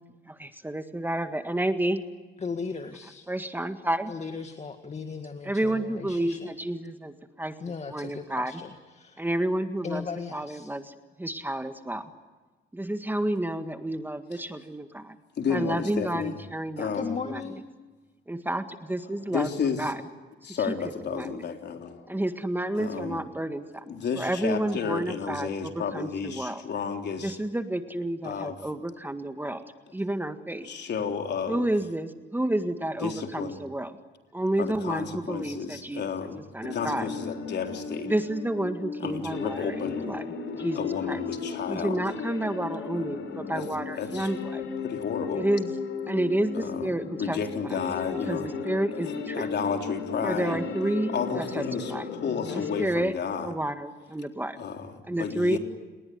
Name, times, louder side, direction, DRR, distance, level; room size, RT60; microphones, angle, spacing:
voice 1, 0.3-2.0 3.3-4.1 5.4-8.5 9.2-10.1 10.3-12.1 12.7-15.2 15.5-16.9 17.2-17.4 18.3-19.5 19.8-20.0 21.1-21.3 22.1-26.6 27.2-29.6 29.9-30.7 31.5-33.9 34.3-36.0 36.5-37.1 38.0-40.2 40.5-41.2 41.7-44.6 45.4-45.7 46.1-47.4 48.3-49.5 50.2-51.6 51.9-52.0 52.5-53.1 53.4-54.6 55.1-55.6, right 1 dB, 10° right, 8 dB, 1.8 m, -30 dB
voice 2, 2.4-3.3 4.1-6.5 7.6-9.2 9.8-10.7 16.9-17.6, left 5 dB, 35° left, 7 dB, 1.9 m, -37 dB
voice 3, 15.4-16.4 16.8-17.2 19.3-19.9 20.4-22.2 22.8-23.2 23.9-27.4 28.2-28.6 30.6-31.7 33.0-33.6 34.6-38.1 39.0-40.1 40.8-42.0 43.5-43.7 44.0-44.3 44.8-45.5 46.5-46.9 47.2-48.5 49.0-50.6 51.1-53.5 54.6-55.6, left 6 dB, 60° left, 4 dB, 3.7 m, -32 dB
sound 1, 36.6-52.9, left 5 dB, 75° left, 5.1 m, -35 dB
29.5 x 20.5 x 9.4 m, 1.3 s
cardioid pair, 90°, 20 cm